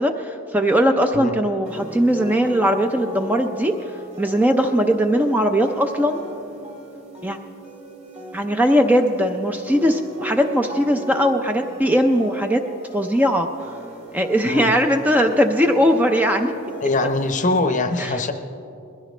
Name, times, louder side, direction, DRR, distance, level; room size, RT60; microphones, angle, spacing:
voice 1, 0.0-3.7 4.2-6.2 7.2-7.4 8.3-12.6 12.9-13.5 14.1-16.5 18.0-18.2, equal, 10° right, 5 dB, 0.5 m, -19 dB
sound 1, 1.6-17.7, equal, 30° right, 2.1 m, -39 dB
voice 2, 16.8-18.3, left 2 dB, 35° left, 8 dB, 0.7 m, -22 dB
21.0 x 15.5 x 3.3 m, 2.7 s
head